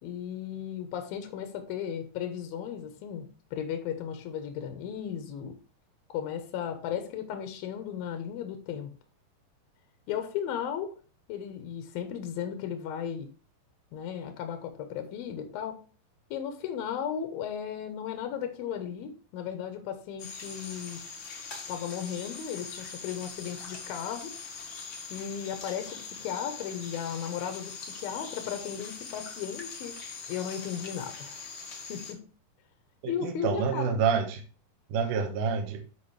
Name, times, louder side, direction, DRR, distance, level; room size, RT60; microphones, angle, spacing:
voice 1, 0.0-5.6 6.1-8.9 10.1-10.9 11.3-13.3 13.9-15.9 16.3-21.0 21.7-24.4 25.1-30.0 30.3-31.5 31.9-32.3 33.1-34.0, left 8 dB, 80° left, 7 dB, 2.9 m, -35 dB
sound 1, 20.2-32.1, left 5 dB, 45° left, 1.7 m, -42 dB
voice 2, 33.0-34.4 34.9-35.8, right 6 dB, 70° right, 4 dB, 2.5 m, -28 dB
13.0 x 4.4 x 3.3 m, 0.36 s
omnidirectional pair, 4.1 m